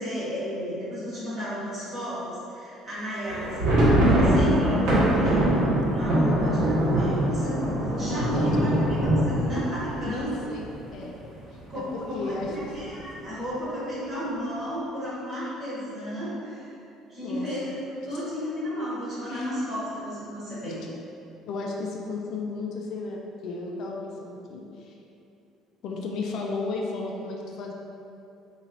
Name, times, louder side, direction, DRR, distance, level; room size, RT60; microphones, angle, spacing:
voice 1, 0.0-10.4 11.7-16.7 17.1-20.8, equal, 30° right, -9 dB, 1.2 m, -33 dB
sound 1, 3.3-11.0 11.3-11.4 11.7-11.9 12.4-12.9, right 1 dB, 75° right, 1.4 m, -23 dB
voice 2, 8.1-8.8 10.0-10.6 10.9-11.2 11.5-12.5 17.2-17.5 19.3-19.5 20.7-20.8 21.5-25.0 25.8-27.7, left 3 dB, 50° left, 0 dB, 0.3 m, -34 dB
4.3 x 2.9 x 2.6 m, 2.7 s
cardioid pair, 170°, 0 cm